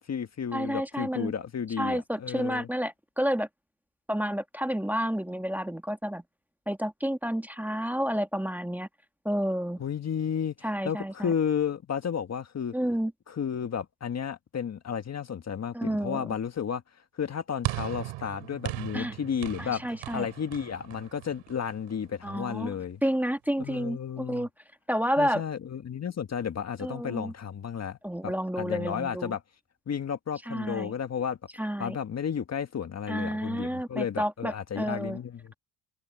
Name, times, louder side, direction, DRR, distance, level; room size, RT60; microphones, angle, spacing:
voice 1, 0.0-2.7 9.8-12.7 13.3-16.8 17.1-19.8 20.1-23.0 23.6-24.5 25.2-29.4 29.9-31.4 31.8-35.5, left 7 dB, 35° left, 1.6 m, -32 dB
voice 2, 0.5-1.3 1.8-3.5 4.1-6.2 6.7-8.9 9.2-9.8 10.6-11.3 12.7-13.1 15.7-16.3 18.9-19.1 19.6-20.3 22.2-22.7 23.0-24.5 24.9-25.4 26.8-27.3 28.0-29.3 30.5-30.9 31.6-32.0 33.1-35.2, equal, 5° right, 1.6 m, -30 dB
sound 1, 17.6-22.1, right 17 dB, 80° right, 4.0 m, -38 dB
cardioid pair, 115°, 46 cm